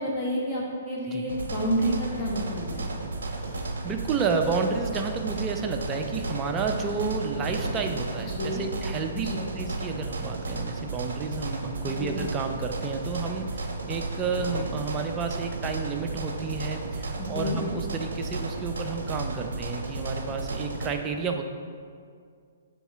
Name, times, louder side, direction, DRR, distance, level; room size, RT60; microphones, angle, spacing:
voice 1, 0.0-2.9 8.4-8.6 9.1-9.4 12.0-12.2 17.2-17.6, equal, 10° left, -7 dB, 1.1 m, -29 dB
sound 1, 1.3-20.9, right 2 dB, 60° right, 0.7 m, -33 dB
voice 2, 3.4-21.4, right 5 dB, 20° right, 4 dB, 0.5 m, -31 dB
6.9 x 4.5 x 3.6 m, 2.2 s
figure-of-eight pair, 120°, 0 cm